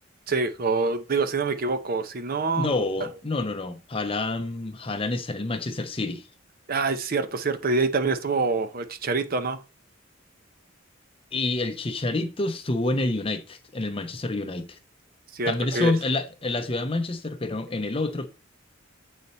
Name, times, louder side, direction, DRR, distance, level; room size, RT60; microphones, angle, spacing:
voice 1, 0.3-2.7 6.7-9.6 15.3-15.9, right 3 dB, 45° right, 0.6 m, -26 dB
voice 2, 2.6-6.3 11.3-14.8 15.5-18.3, left 2 dB, 25° left, 0.6 m, -28 dB
8.2 x 4.1 x 4.2 m
head